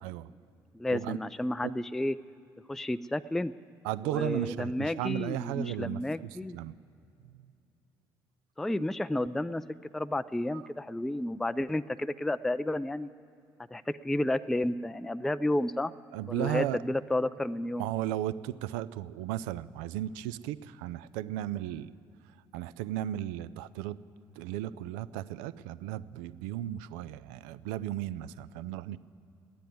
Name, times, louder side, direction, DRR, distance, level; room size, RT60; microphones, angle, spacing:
voice 1, 0.0-0.3 0.9-1.2 1.6-1.7 3.8-6.7 7.2-7.5 10.5-10.6 16.1-16.8 17.8-21.9 22.5-24.0 24.4-29.0, right 13 dB, 65° right, 16 dB, 0.4 m, -35 dB
voice 2, 0.7-2.2 2.7-3.5 4.0-6.6 8.6-9.6 9.9-13.1 13.7-15.9 16.3-17.9, left 1 dB, 5° left, 13 dB, 0.3 m, -31 dB
12.5 x 9.9 x 9.3 m, 2.6 s
figure-of-eight pair, 50°, 12 cm